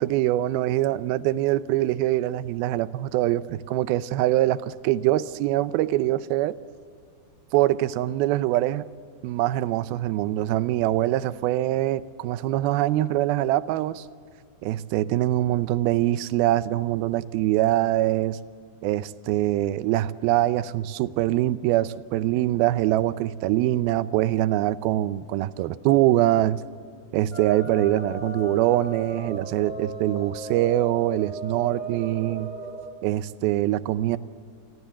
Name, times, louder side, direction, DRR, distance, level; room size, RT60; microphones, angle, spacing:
voice 1, 0.0-6.6 7.5-8.9 9.2-14.1 14.6-18.4 18.8-26.6 27.1-32.5 33.0-34.2, right 14 dB, 80° right, 15 dB, 2.5 m, -23 dB
sound 1, 27.3-32.9, right 1 dB, 15° right, 2.2 m, -36 dB
29.0 x 22.5 x 7.3 m, 2.3 s
omnidirectional pair, 4.5 m